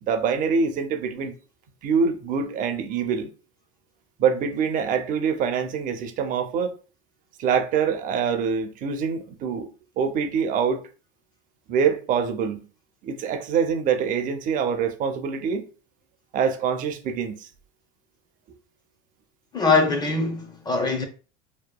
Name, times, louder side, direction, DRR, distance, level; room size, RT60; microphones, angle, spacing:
voice 1, 0.0-1.3 1.8-3.3 4.2-6.7 7.4-9.7 10.0-10.8 11.7-12.7 13.0-15.7 16.3-17.5, right 6 dB, 45° right, 0.5 m, -25 dB
voice 2, 19.5-21.0, left 4 dB, 20° left, 0.6 m, -22 dB
2.8 x 2.2 x 2.2 m
supercardioid pair, 115°, 19 cm